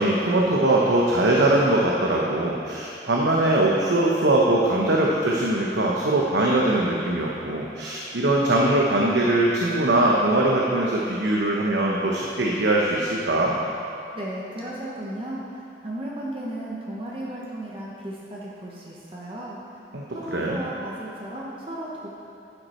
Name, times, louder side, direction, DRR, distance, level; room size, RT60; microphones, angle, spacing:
voice 1, 0.0-13.6 19.9-20.0 20.3-20.6, right 1 dB, 80° right, -3 dB, 0.9 m, -21 dB
voice 2, 14.1-19.6 20.1-22.1, right 1 dB, 30° right, -5 dB, 1.1 m, -35 dB
10.5 x 8.0 x 4.4 m, 2.7 s
head